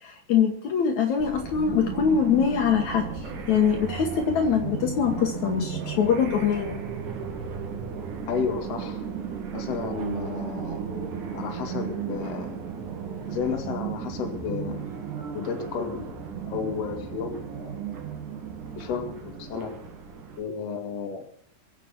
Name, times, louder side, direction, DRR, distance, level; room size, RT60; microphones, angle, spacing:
voice 1, 0.0-3.1 3.5-6.8, left 7 dB, 65° left, 4 dB, 1.9 m, -23 dB
sound 1, 1.2-20.4, right 7 dB, 55° right, 3.0 m, -35 dB
voice 2, 8.3-9.0 9.5-10.9 11.3-12.6 13.3-14.9 15.3-16.1 16.5-17.8 18.8-19.7 20.4-21.2, left 6 dB, 45° left, 3 dB, 2.5 m, -32 dB
23.0 x 7.7 x 5.8 m, 0.65 s
omnidirectional pair, 5.0 m